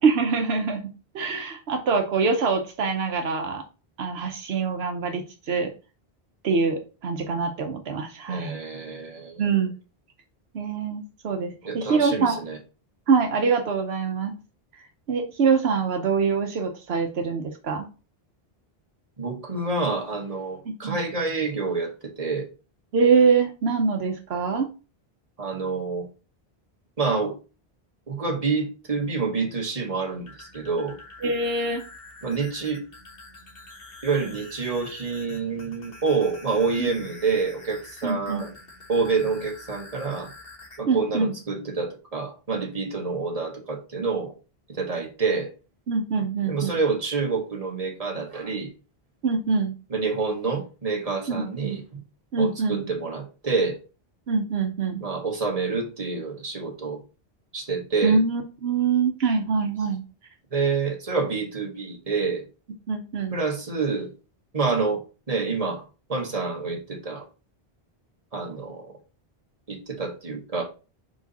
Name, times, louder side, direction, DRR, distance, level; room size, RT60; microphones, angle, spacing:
voice 1, 0.0-3.6 4.0-5.7 6.4-8.6 9.4-9.7 10.5-12.4 13.1-14.3 15.1-17.9 20.7-21.0 22.9-24.7 31.2-31.8 36.8-36.9 38.0-38.4 40.9-41.3 45.9-46.8 49.2-49.7 51.3-51.8 52.3-52.8 54.3-55.0 58.0-60.0 62.9-63.4, right 5 dB, 80° right, 5 dB, 1.0 m, -24 dB
voice 2, 8.3-9.4 11.6-12.6 19.2-21.9 22.2-22.5 25.4-26.1 27.0-27.3 28.1-31.0 32.2-32.8 34.0-38.5 38.9-40.3 40.8-44.3 44.8-45.5 46.5-48.7 49.9-52.0 52.4-53.8 55.0-57.0 57.5-58.2 60.5-62.4 63.3-64.1 64.5-65.0 65.3-65.8 66.1-67.2 68.3-68.9 69.7-70.6, right 4 dB, 35° right, 1 dB, 1.5 m, -27 dB
sound 1, 30.1-40.8, left 2 dB, 65° left, 1.7 m, -46 dB
5.1 x 4.8 x 4.1 m, 0.33 s
omnidirectional pair, 1.0 m